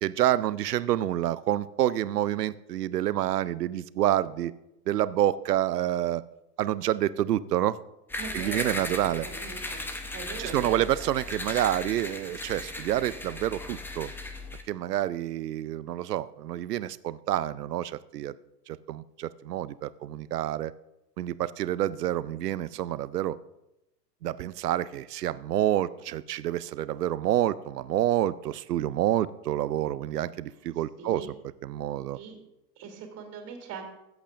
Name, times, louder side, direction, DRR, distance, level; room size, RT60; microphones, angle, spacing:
voice 1, 0.0-4.5 4.9-6.2 6.6-7.8 8.3-9.3 10.4-14.1 14.7-18.3 18.7-20.7 21.2-23.4 24.2-31.4 31.6-32.2, right 12 dB, 70° right, 18 dB, 0.6 m, -28 dB
sound 1, 8.1-14.6, left 2 dB, 5° left, 0.7 m, -37 dB
voice 2, 8.1-9.8 10.1-10.8 31.0-31.3 32.1-32.4 32.8-33.8, right 5 dB, 30° right, 3 dB, 3.1 m, -41 dB
22.5 x 8.2 x 2.5 m, 0.89 s
figure-of-eight pair, 95°, 49 cm